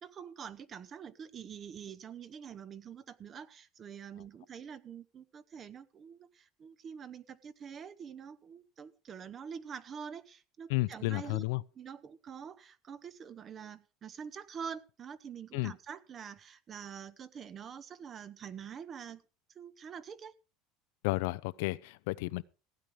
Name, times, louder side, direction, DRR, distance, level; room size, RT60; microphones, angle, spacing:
voice 1, 0.0-11.4 11.8-19.2 19.5-20.3, right 7 dB, 35° right, 0.8 m, -46 dB
voice 2, 10.7-11.6 15.5-15.7 21.0-22.4, left 21 dB, 80° left, 0.5 m, -32 dB
15.5 x 9.0 x 4.9 m
supercardioid pair, 115°, 0 cm